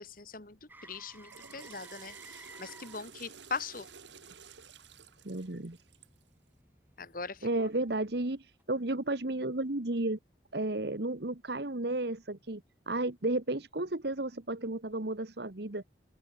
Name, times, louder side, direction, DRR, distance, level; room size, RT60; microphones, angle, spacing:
voice 1, 0.0-3.9 7.0-7.7, left 4 dB, 50° left, 1.9 m, -41 dB
Motor vehicle (road), 0.7-8.6 12.9-13.1, right 2 dB, 10° right, 2.3 m, -57 dB
Water / Toilet flush, 1.0-6.3, right 6 dB, 75° right, 2.5 m, -52 dB
voice 2, 5.2-5.8 7.4-10.2 10.5-15.8, right 2 dB, 60° right, 1.4 m, -33 dB
open air
head